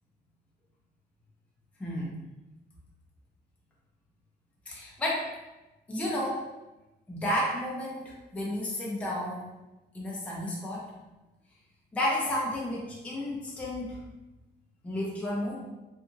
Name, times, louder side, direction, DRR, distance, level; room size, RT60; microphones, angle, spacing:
voice 1, 1.8-2.1 4.7-5.3 5.9-6.4 7.1-9.5 9.9-10.8 11.9-14.0 14.8-15.7, left 1 dB, 10° left, -5 dB, 0.4 m, -32 dB
2.7 x 2.4 x 2.6 m, 1.0 s
cardioid pair, 165°, 18 cm